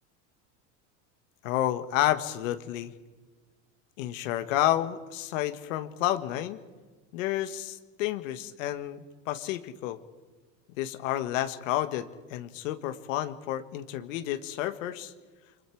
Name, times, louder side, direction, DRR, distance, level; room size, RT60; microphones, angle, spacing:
voice 1, 1.4-2.9 4.0-6.6 7.1-10.0 10.8-15.1, left 13 dB, 80° left, 10 dB, 1.7 m, -30 dB
29.0 x 23.0 x 4.7 m, 1.3 s
supercardioid pair, 130°, 39 cm